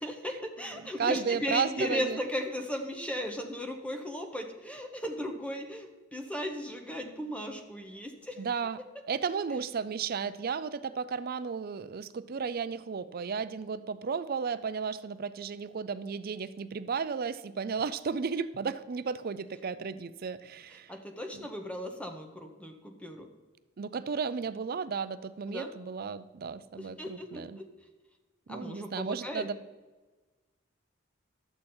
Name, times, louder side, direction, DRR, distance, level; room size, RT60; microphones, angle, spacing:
voice 1, 0.0-8.4 20.9-23.3 25.5-25.7 26.8-27.7 28.5-29.5, equal, 5° left, 4 dB, 0.9 m, -36 dB
voice 2, 1.0-2.2 8.4-8.8 9.1-20.9 21.3-21.5 23.8-27.6 28.5-29.6, right 5 dB, 50° right, 14 dB, 0.4 m, -34 dB
12.0 x 8.0 x 4.4 m, 1.3 s
head